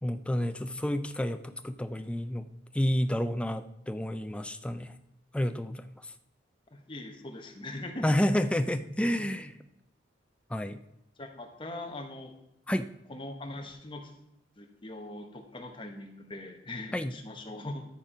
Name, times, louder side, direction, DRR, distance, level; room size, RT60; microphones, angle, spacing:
voice 1, 0.0-2.5 2.7-5.0 5.3-6.1 8.0-9.5 10.5-10.8 12.7-12.9 16.9-17.2, left 1 dB, 5° left, 9 dB, 0.3 m, -30 dB
voice 2, 6.7-8.1 9.2-9.3 11.2-12.3 13.1-14.1 14.6-17.9, left 1 dB, 25° left, 4 dB, 1.1 m, -41 dB
13.5 x 4.5 x 5.1 m, 0.85 s
head